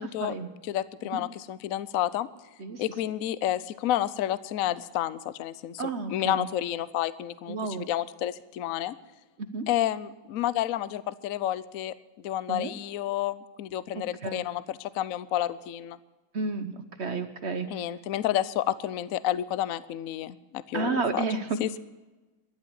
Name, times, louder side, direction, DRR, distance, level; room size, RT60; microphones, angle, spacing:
voice 1, 0.0-0.3 0.6-2.3 2.8-5.8 6.1-9.0 9.7-11.9 12.2-16.0 17.7-21.3 21.6-21.8, left 12 dB, 90° left, 17 dB, 0.7 m, -30 dB
voice 2, 5.8-6.5 7.5-7.9 9.5-9.7 12.5-12.7 14.2-14.5 16.3-17.8 20.7-21.6, right 4 dB, 50° right, 9 dB, 0.8 m, -31 dB
13.0 x 11.5 x 8.1 m, 1.1 s
omnidirectional pair, 2.3 m